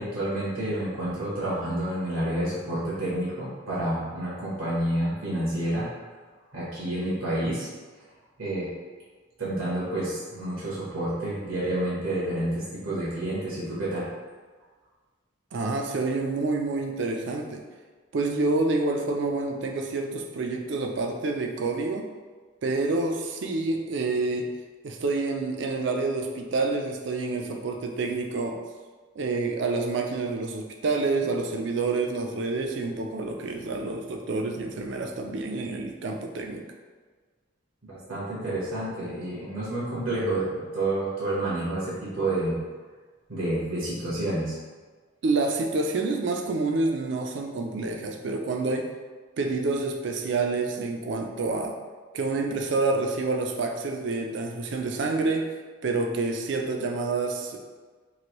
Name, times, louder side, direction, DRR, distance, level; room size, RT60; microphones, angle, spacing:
voice 1, 0.0-5.9 6.5-7.7 8.4-8.7 9.4-14.1 37.8-42.6 43.3-44.6, right 1 dB, 80° right, -8 dB, 1.0 m, -29 dB
voice 2, 15.5-17.6 18.1-22.1 22.6-24.5 24.8-28.6 29.2-36.6 45.2-48.9 49.4-51.8 52.1-55.5 55.8-57.6, right 3 dB, 60° right, 3 dB, 0.4 m, -28 dB
3.1 x 2.5 x 2.9 m, 1.4 s
head